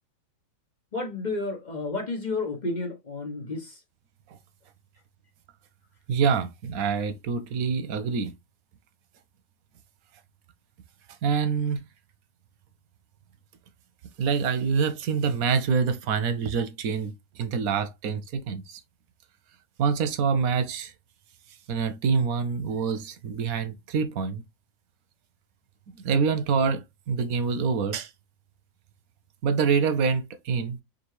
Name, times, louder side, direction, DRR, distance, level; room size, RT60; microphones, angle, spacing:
voice 1, 0.9-3.8, left 3 dB, 35° left, 0.9 m, -31 dB
voice 2, 6.1-8.3 11.2-11.8 14.2-18.8 19.8-20.9 21.7-24.4 26.0-28.1 29.4-30.8, right 5 dB, 90° right, 1.2 m, -26 dB
5.1 x 2.5 x 3.1 m
omnidirectional pair, 1.5 m